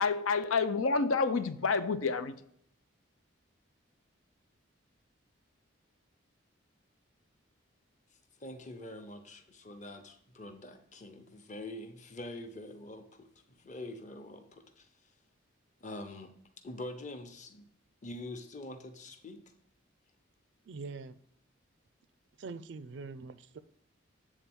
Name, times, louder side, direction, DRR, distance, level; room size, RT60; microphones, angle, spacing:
voice 1, 0.0-2.4, left 4 dB, 85° left, 11 dB, 0.6 m, -28 dB
voice 2, 8.4-14.9 15.8-16.3 16.6-17.6 18.0-19.4, left 1 dB, 35° left, 6 dB, 0.8 m, -45 dB
voice 3, 20.7-21.2 22.4-23.6, right 4 dB, 60° right, 15 dB, 0.4 m, -43 dB
8.2 x 3.8 x 6.1 m, 0.69 s
head